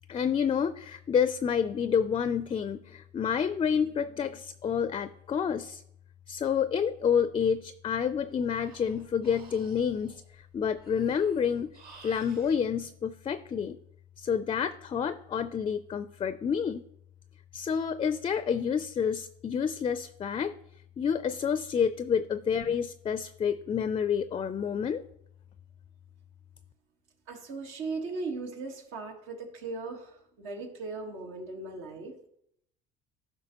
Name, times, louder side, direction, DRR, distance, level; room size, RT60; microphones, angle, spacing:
voice 1, 0.1-5.8 6.3-11.7 12.0-13.8 14.2-16.8 17.5-20.5 21.0-25.0, left 7 dB, 25° left, 13 dB, 0.4 m, -29 dB
Breathing, 8.1-12.6, right 4 dB, 50° right, 1.7 m, -55 dB
voice 2, 27.3-32.1, right 3 dB, 75° right, 3 dB, 1.6 m, -38 dB
12.5 x 5.5 x 2.9 m, 0.75 s
supercardioid pair, 90°, 21 cm